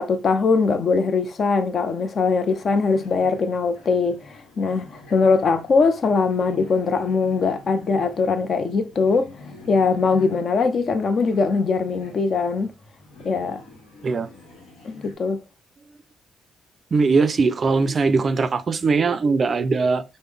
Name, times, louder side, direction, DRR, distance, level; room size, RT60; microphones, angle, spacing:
voice 1, 0.0-9.3 9.7-12.7 13.2-13.6 14.8-15.4, left 4 dB, 50° left, 0.4 m, -21 dB
sound 1, 2.2-15.1, left 2 dB, 90° left, 1.0 m, -46 dB
voice 2, 16.9-20.0, right 4 dB, 40° right, 0.3 m, -20 dB
3.6 x 2.0 x 3.4 m
cardioid pair, 90°, 0 cm